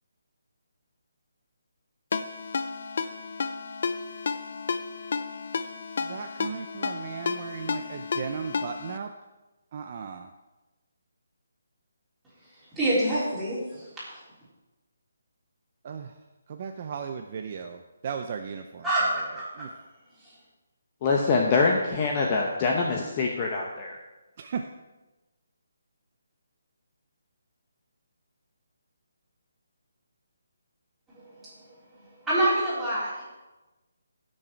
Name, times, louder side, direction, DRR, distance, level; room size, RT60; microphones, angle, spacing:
Ringtone, 2.1-9.0, left 5 dB, 45° left, 0.6 m, -32 dB
voice 1, 6.0-9.1 9.7-10.2 15.8-16.2 16.5-19.1 19.6-19.7 24.4-24.7, right 6 dB, 30° right, 5 dB, 0.5 m, -36 dB
voice 2, 12.8-14.2 18.8-19.4 31.1-31.5 32.3-33.2, right 1 dB, 5° right, -12 dB, 3.7 m, -26 dB
voice 3, 21.0-23.9, left 4 dB, 20° left, 0 dB, 0.9 m, -24 dB
16.5 x 6.5 x 4.5 m, 1.1 s
hypercardioid pair, 175°, 0 cm